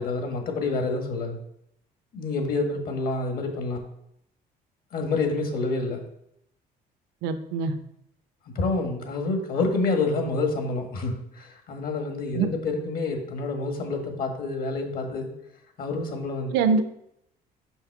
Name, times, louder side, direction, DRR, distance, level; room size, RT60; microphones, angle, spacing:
voice 1, 0.0-1.4 2.1-3.8 4.9-6.0 8.6-15.3 15.8-16.8, left 3 dB, 60° left, 4 dB, 1.6 m, -28 dB
voice 2, 7.2-7.7 12.3-12.5 16.5-16.8, right 5 dB, 90° right, 10 dB, 0.6 m, -23 dB
5.5 x 5.5 x 4.7 m, 0.75 s
cardioid pair, 110°, 17 cm